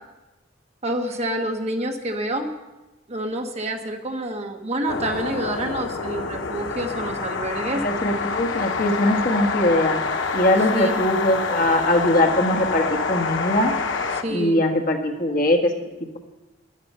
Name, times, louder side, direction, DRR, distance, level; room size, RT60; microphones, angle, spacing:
voice 1, 0.8-2.5 3.1-7.8 10.7-10.9 14.2-14.6, right 1 dB, 35° right, 4 dB, 1.1 m, -28 dB
sound 1, 4.9-14.2, left 4 dB, 90° left, 0.8 m, -27 dB
voice 2, 7.7-10.0 10.3-13.7 14.3-15.7, left 1 dB, 50° left, 2 dB, 1.5 m, -21 dB
13.0 x 10.5 x 5.5 m, 1.1 s
head